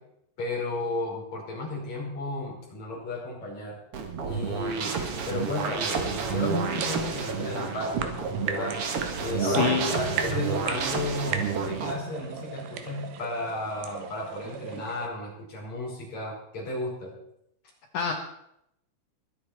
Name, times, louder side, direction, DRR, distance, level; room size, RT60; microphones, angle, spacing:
voice 1, 0.4-3.8 4.2-5.0 5.3-8.8 9.2-17.1, left 2 dB, 40° left, -4 dB, 6.2 m, -33 dB
sound 1, 3.9-11.9, right 5 dB, 90° right, 1.2 m, -30 dB
sound 2, 5.6-15.1, right 7 dB, 70° right, 2.8 m, -38 dB
voice 2, 9.4-9.9 17.9-18.1, left 6 dB, 75° left, 3 dB, 1.8 m, -26 dB
22.0 x 8.7 x 4.5 m, 0.77 s
omnidirectional pair, 5.1 m